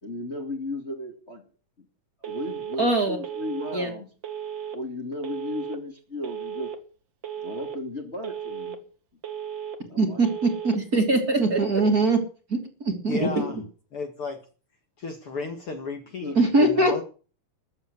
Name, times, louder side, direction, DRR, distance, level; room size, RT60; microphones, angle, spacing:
voice 1, 0.0-1.4 1.8-1.9 2.2-4.1 4.7-6.7 7.4-8.8 9.9-10.2 16.2-16.4, left 2 dB, 20° left, 2 dB, 2.5 m, -35 dB
Telephone, 2.2-2.8 3.2-3.8 4.2-4.8 5.2-5.8 6.2-6.8 7.2-7.8 8.2-8.8 9.2-9.8 10.2-10.8, right 9 dB, 45° right, 1.9 m, -35 dB
voice 2, 2.8-3.2 3.7-3.9 10.0-12.2 12.5-13.3 16.4-17.0, right 2 dB, 30° right, 3 dB, 3.0 m, -22 dB
voice 3, 13.1-13.6 13.9-14.4 15.0-17.0, left 3 dB, 45° left, 4 dB, 2.5 m, -34 dB
14.0 x 8.1 x 9.6 m, 0.38 s
omnidirectional pair, 3.8 m